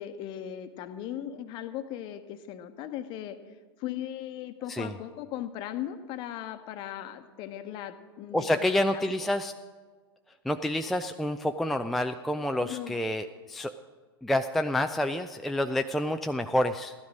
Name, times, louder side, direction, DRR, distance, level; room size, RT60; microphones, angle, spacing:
voice 1, 0.0-3.4 3.8-9.0 12.6-13.0, left 11 dB, 35° left, 9 dB, 1.0 m, -38 dB
voice 2, 8.3-9.5 10.4-13.7 14.2-16.9, left 1 dB, ahead, 6 dB, 0.3 m, -28 dB
15.0 x 12.5 x 5.0 m, 1.5 s
figure-of-eight pair, 90°, 13 cm